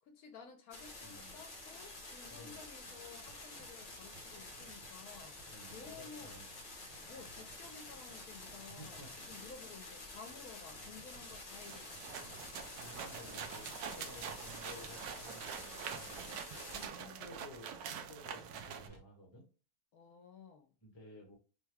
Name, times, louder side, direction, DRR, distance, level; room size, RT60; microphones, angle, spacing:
voice 1, 0.0-5.4 5.7-6.3 7.1-12.2 16.7-17.0 19.9-20.7, left 5 dB, 75° left, 1.0 m, -54 dB
sound 1, 0.7-16.9, left 2 dB, 40° left, 0.8 m, -50 dB
voice 2, 1.0-1.4 2.3-2.6 2.8-3.0 5.5-6.5 8.6-9.2 12.8-16.4 17.0-19.4 20.8-21.3, left 1 dB, 20° left, 1.0 m, -54 dB
sound 2, 3.2-19.0, right 3 dB, 30° right, 0.4 m, -62 dB
sound 3, 11.6-18.9, right 7 dB, 90° right, 1.1 m, -45 dB
3.4 x 2.2 x 3.3 m
omnidirectional pair, 1.6 m